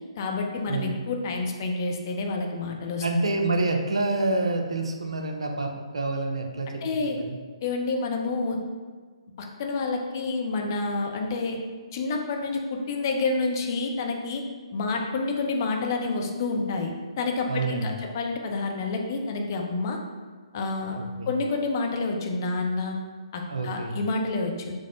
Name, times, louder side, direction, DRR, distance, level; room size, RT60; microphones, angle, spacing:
voice 1, 0.2-3.0 6.8-7.2 7.6-8.6 9.4-11.6 11.9-14.4 14.7-20.0 20.5-21.0 21.3-22.9 23.3-24.7, left 3 dB, 40° left, 1 dB, 0.5 m, -28 dB
voice 2, 3.0-7.4 17.5-18.0 20.9-21.3 23.5-24.0, right 2 dB, 65° right, 3 dB, 0.5 m, -28 dB
4.7 x 2.0 x 3.8 m, 1.5 s
figure-of-eight pair, 135°, 3 cm